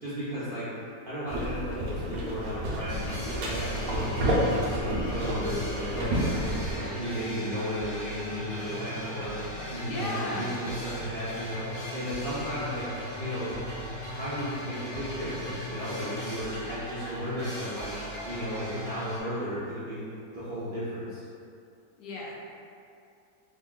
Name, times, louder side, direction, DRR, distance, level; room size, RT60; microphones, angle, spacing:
voice 1, 0.0-0.7 1.0-3.1 3.4-9.4 9.7-11.6 11.9-12.9 13.2-17.9 18.2-20.0 20.3-21.2, equal, 55° right, -12 dB, 0.6 m, -34 dB
sound 1, 1.3-6.8, equal, 75° right, 1.2 m, -30 dB
Rajiwali Jogja Street Percussion-Java, 2.9-19.2, equal, 40° left, 0.6 m, -38 dB
voice 2, 9.8-10.5 22.0-22.4, left 2 dB, 85° left, -4 dB, 1.3 m, -35 dB
3.4 x 2.2 x 3.7 m, 2.5 s
omnidirectional pair, 1.8 m